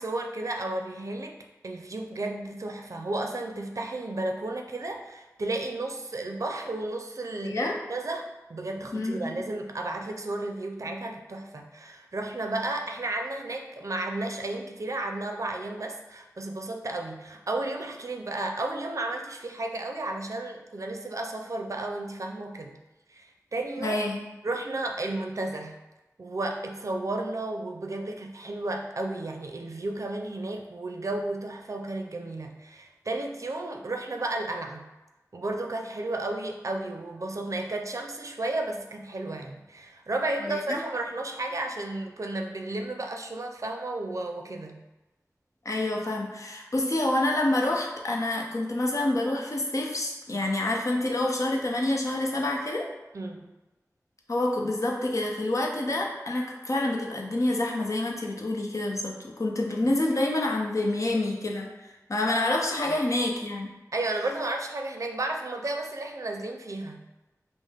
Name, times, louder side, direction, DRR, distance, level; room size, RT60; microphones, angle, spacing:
voice 1, 0.0-7.6 7.9-22.8 23.1-24.0 24.4-25.8 26.2-34.9 35.3-44.8 53.1-53.5 59.8-59.9 62.9-63.0 63.9-67.0, right 2 dB, 60° right, 3 dB, 0.4 m, -33 dB
voice 2, 8.9-9.4 23.8-24.2 40.4-40.8 45.6-52.9 54.3-61.8 62.1-63.7, left 1 dB, 60° left, -1 dB, 0.7 m, -27 dB
5.3 x 2.0 x 3.5 m, 1.1 s
wide cardioid pair, 65°, 6 cm